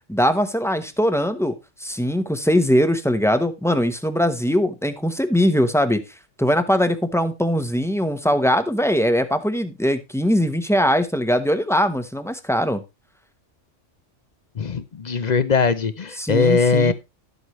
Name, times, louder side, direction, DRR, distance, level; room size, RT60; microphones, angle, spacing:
voice 1, 0.1-1.5 1.8-6.0 6.4-12.8 16.2-16.9, equal, 5° left, 10 dB, 0.7 m, -21 dB
voice 2, 14.6-16.9, left 4 dB, 45° left, 13 dB, 0.6 m, -20 dB
12.5 x 8.0 x 3.1 m, 0.24 s
omnidirectional pair, 1.3 m